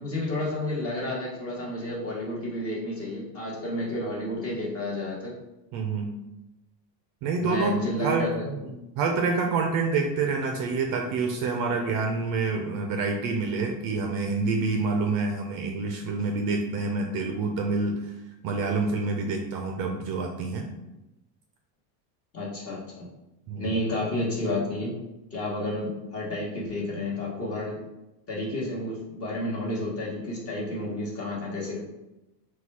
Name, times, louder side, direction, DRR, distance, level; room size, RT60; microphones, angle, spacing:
voice 1, 0.0-5.3 7.4-8.6 22.3-23.1 23.5-25.0 25.3-27.8 28.3-31.8, left 1 dB, 30° left, -4 dB, 1.2 m, -31 dB
voice 2, 5.7-6.1 7.2-17.9 18.4-20.7 23.5-23.8, right 4 dB, 45° right, 3 dB, 0.5 m, -27 dB
4.1 x 2.3 x 4.6 m, 0.97 s
cardioid pair, 155°, 49 cm